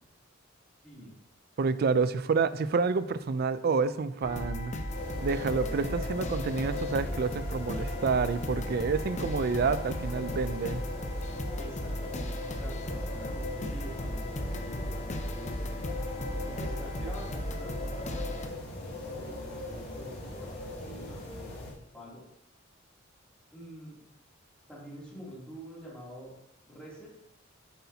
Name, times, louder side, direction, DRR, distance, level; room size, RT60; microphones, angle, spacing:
voice 1, 1.6-4.7 5.2-10.8, right 4 dB, 50° right, 15 dB, 0.4 m, -28 dB
sound 1, 4.2-18.5, left 1 dB, 40° left, 0.7 m, -36 dB
sound 2, 4.9-21.7, left 2 dB, 55° left, 2.8 m, -40 dB
voice 2, 11.6-15.8 16.4-21.5 21.9-22.2 23.5-24.0 24.7-26.3 26.7-27.1, equal, 5° left, -7 dB, 2.8 m, -47 dB
8.3 x 8.0 x 2.8 m, 0.86 s
head